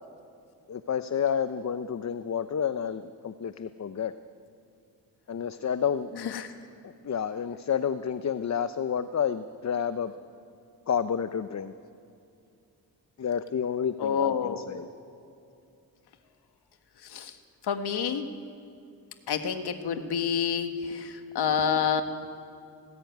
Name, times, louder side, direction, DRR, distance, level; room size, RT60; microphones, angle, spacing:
voice 1, 0.7-4.1 5.3-6.3 7.0-10.1 10.9-11.7 13.2-14.9, left 7 dB, 45° left, 11 dB, 0.8 m, -30 dB
voice 2, 14.0-14.6 17.1-17.3 17.7-18.3 19.3-22.0, left 7 dB, 85° left, 7 dB, 1.7 m, -28 dB
19.5 x 19.0 x 9.4 m, 2.6 s
cardioid pair, 70°, 38 cm